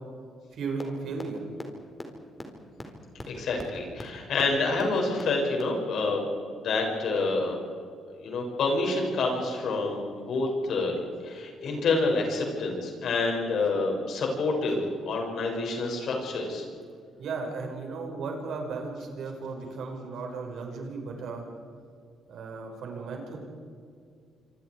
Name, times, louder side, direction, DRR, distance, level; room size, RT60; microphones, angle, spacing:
voice 1, 0.5-1.4 17.2-21.4 22.3-23.4, right 4 dB, 70° right, 2 dB, 5.7 m, -35 dB
sound 1, 0.8-0.9 1.2-1.3 1.6-1.7 2.0-2.1 2.4-2.5 2.8-2.9 3.2-3.3 3.6-3.7 4.0-4.1 4.4-4.5 4.8-4.9 5.2-5.3 5.6-5.7, left 2 dB, 20° left, 4.3 m, -37 dB
voice 2, 3.3-7.6 8.2-11.0 11.2-16.6, left 3 dB, 70° left, 1 dB, 6.8 m, -28 dB
26.5 x 26.0 x 4.9 m, 2.3 s
cardioid pair, 90°, 0 cm